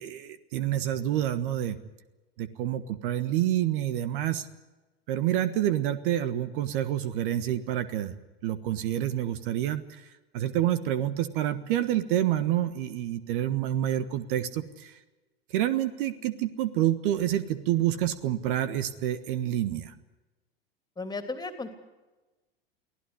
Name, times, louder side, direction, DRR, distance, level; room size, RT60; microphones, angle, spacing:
voice 1, 0.0-1.8 2.4-4.5 5.1-8.1 8.4-10.0 10.3-14.9 15.5-19.9, right 12 dB, 55° right, 14 dB, 1.4 m, -28 dB
voice 2, 21.0-21.7, left 3 dB, 15° left, 8 dB, 3.0 m, -35 dB
24.0 x 16.5 x 9.7 m, 1.2 s
figure-of-eight pair, 85°, 30 cm